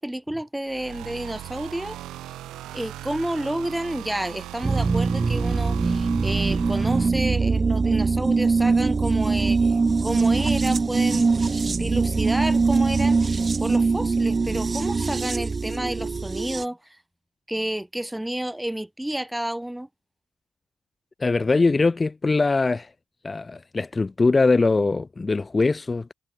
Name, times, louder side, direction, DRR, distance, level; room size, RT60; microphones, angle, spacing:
voice 1, 0.0-2.0 2.7-16.8 17.5-19.9, right 1 dB, 5° right, 2.5 m, -30 dB
sound 1, 0.6-7.1, right 14 dB, 85° right, 2.5 m, -39 dB
sound 2, 4.6-16.6, right 4 dB, 30° right, 1.2 m, -22 dB
voice 2, 21.2-22.9 23.2-26.1, left 3 dB, 25° left, 1.2 m, -22 dB
cardioid pair, 90°, 0 cm